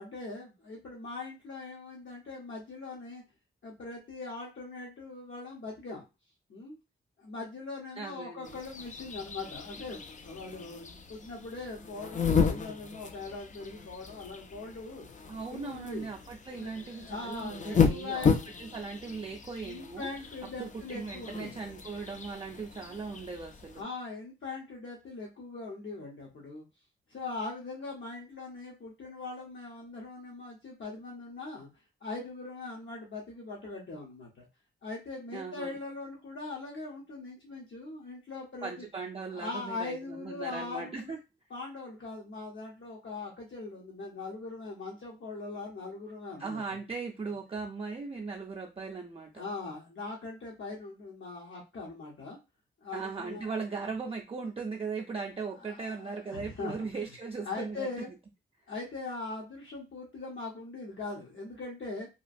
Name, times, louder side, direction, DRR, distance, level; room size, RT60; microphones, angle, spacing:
voice 1, 0.0-3.2 3.6-6.0 6.5-6.8 7.2-15.1 15.5-16.1 16.6-18.4 19.6-21.5 23.8-26.6 27.1-31.7 32.0-34.5 34.8-38.8 39.3-41.1 41.5-46.8 49.4-52.4 52.8-53.5 55.6-56.7 57.4-58.1 58.7-62.1, left 3 dB, 70° left, -2 dB, 0.8 m, -41 dB
voice 2, 8.0-8.6 15.3-18.3 18.6-20.1 20.4-23.8 35.3-35.7 38.6-41.2 46.4-49.5 52.9-57.9, right 4 dB, 30° right, 0 dB, 0.4 m, -38 dB
sound 1, 8.4-23.8, left 6 dB, 40° left, 0.4 m, -34 dB
2.9 x 2.3 x 2.5 m, 0.26 s
wide cardioid pair, 105°, 21 cm